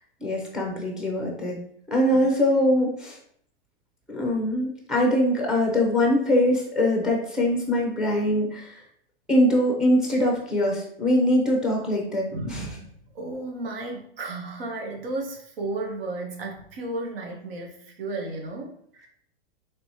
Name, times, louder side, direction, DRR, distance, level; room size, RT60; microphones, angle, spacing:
voice 1, 0.2-1.6 1.9-3.2 4.1-8.7 9.3-12.7, left 1 dB, ahead, -1 dB, 0.6 m, -23 dB
voice 2, 12.3-19.1, right 2 dB, 75° right, 1 dB, 0.8 m, -34 dB
3.4 x 3.0 x 2.7 m, 0.66 s
hypercardioid pair, 140°, 30 cm